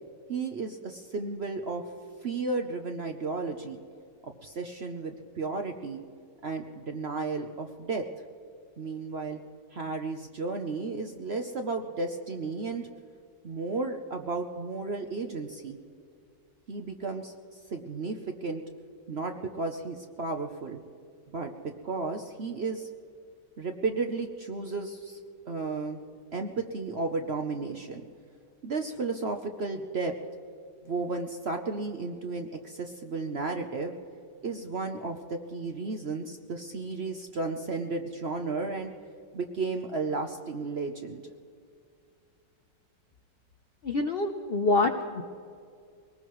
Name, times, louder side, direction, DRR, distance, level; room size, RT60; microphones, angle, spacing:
voice 1, 0.3-1.8 2.2-3.8 4.4-6.0 6.4-8.0 8.8-9.4 9.7-12.9 13.4-15.8 16.7-17.3 17.7-18.6 19.1-20.8 21.3-21.5 21.8-22.9 23.6-25.2 25.5-26.0 26.3-28.0 28.6-30.1 30.9-33.9 34.4-38.9 39.3-41.2, right 3 dB, 55° right, 5 dB, 0.7 m, -33 dB
voice 2, 43.8-45.2, left 2 dB, 70° left, 6 dB, 0.5 m, -26 dB
23.5 x 19.5 x 3.1 m, 2.3 s
omnidirectional pair, 2.0 m